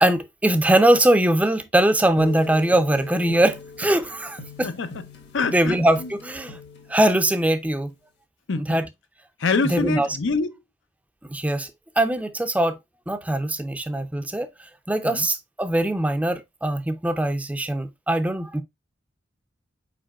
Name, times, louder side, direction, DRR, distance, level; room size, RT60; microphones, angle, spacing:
voice 1, 0.0-4.7 5.5-6.6 6.9-7.9 8.5-8.9 9.6-10.1 11.3-11.7 12.0-12.8 13.1-14.5 14.9-18.6, right 1 dB, 10° right, 0.4 m, -21 dB
sound 1, 2.1-7.8, left 3 dB, 60° left, 1.4 m, -41 dB
voice 2, 5.3-6.1 8.5-8.8 9.4-10.5 15.0-15.3, left 4 dB, 80° left, 0.6 m, -25 dB
5.0 x 4.6 x 2.3 m
head